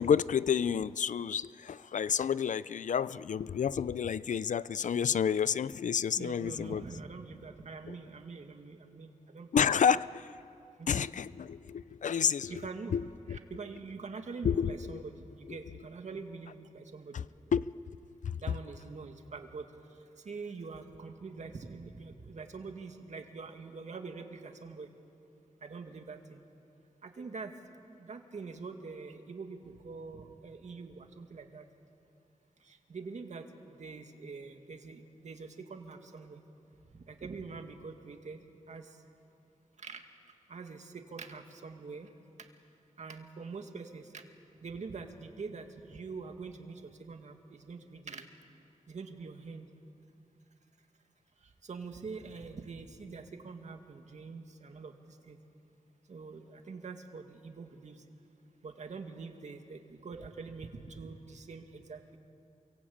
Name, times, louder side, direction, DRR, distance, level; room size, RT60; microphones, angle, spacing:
voice 1, 0.0-6.8 7.9-8.0 9.5-10.3 10.9-12.6 12.9-13.4 14.4-15.0 15.5-15.6 17.1-17.2 17.5-17.7 18.2-18.4, left 7 dB, 75° left, 0.5 m, -30 dB
voice 2, 6.1-9.5 10.8-11.1 12.5-13.0 13.3-17.3 18.4-19.7 20.2-24.9 25.6-26.4 27.0-27.5 27.9-31.7 32.6-36.4 36.9-38.4 38.7-39.0 39.8-40.0 40.5-42.1 42.4-42.5 43.0-44.2 44.6-48.3 48.9-49.7 51.4-55.4 56.1-58.0 58.6-62.2, right 4 dB, 65° right, 2.2 m, -44 dB
28.0 x 24.0 x 8.7 m
wide cardioid pair, 95°, 13 cm